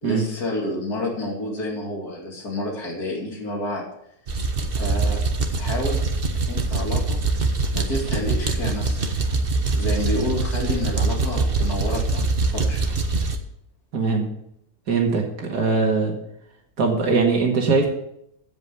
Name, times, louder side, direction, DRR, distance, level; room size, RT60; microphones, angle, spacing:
voice 1, 0.0-3.8 4.7-5.2 5.5-6.0 6.5-7.2 7.7-9.0 9.7-12.8, left 1 dB, 70° left, -1 dB, 3.1 m, -29 dB
sound 1, 4.3-13.4, right 3 dB, 40° right, 1.2 m, -23 dB
voice 2, 13.9-14.3 14.9-16.1 16.8-17.9, right 4 dB, 90° right, 1 dB, 2.5 m, -21 dB
16.0 x 5.4 x 7.0 m, 0.75 s
omnidirectional pair, 1.7 m